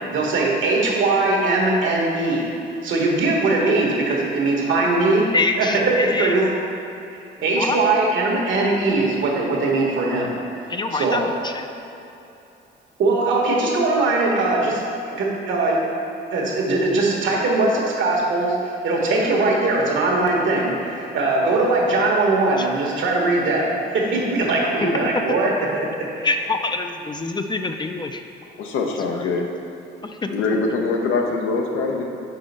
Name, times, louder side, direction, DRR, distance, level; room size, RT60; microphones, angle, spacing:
voice 1, 0.1-2.5 2.8-5.3 5.6-6.5 7.4-11.2 13.0-15.8 16.3-25.7 26.0-26.3, right 2 dB, 75° right, -2 dB, 1.3 m, -21 dB
voice 2, 5.3-6.3 7.6-7.8 10.7-11.7 22.6-22.7 26.2-28.2 29.2-29.3 30.0-30.6, left 3 dB, 20° left, 6 dB, 0.4 m, -26 dB
voice 3, 28.6-29.5 30.3-32.0, left 3 dB, 85° left, 2 dB, 0.8 m, -23 dB
5.5 x 4.1 x 5.4 m, 2.8 s
cardioid pair, 90°, 20 cm